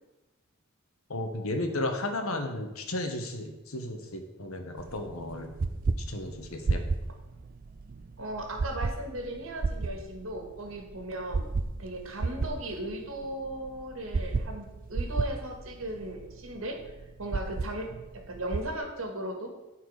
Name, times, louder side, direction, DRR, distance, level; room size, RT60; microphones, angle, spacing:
voice 1, 1.1-5.5 6.1-6.8, left 1 dB, 80° left, 5 dB, 1.3 m, -34 dB
sound 1, 4.8-18.8, right 3 dB, 40° right, 0.4 m, -34 dB
voice 2, 8.2-11.5 11.8-16.8 17.2-19.5, right 1 dB, 70° right, 2 dB, 1.7 m, -37 dB
12.0 x 4.5 x 4.9 m, 1.0 s
head